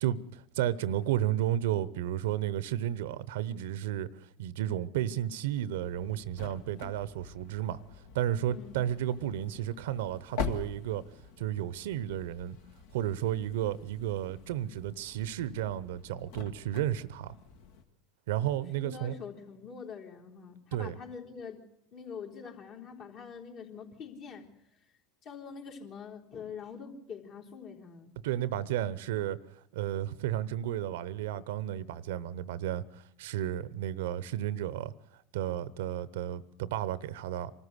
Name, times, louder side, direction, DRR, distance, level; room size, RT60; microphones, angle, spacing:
voice 1, 0.0-4.1 4.4-7.8 8.1-11.0 11.4-12.6 12.9-17.4 18.3-19.2 20.7-21.0 28.2-29.4 29.7-34.9 35.3-37.5, right 12 dB, 75° right, 0.8 m, -32 dB
sound 1, 5.8-17.8, left 6 dB, 70° left, 1.7 m, -44 dB
voice 2, 8.4-8.9 18.7-21.6 21.9-24.5 25.2-28.2, left 6 dB, 55° left, 3.8 m, -44 dB
24.5 x 13.5 x 8.2 m
hypercardioid pair, 85°, 0 cm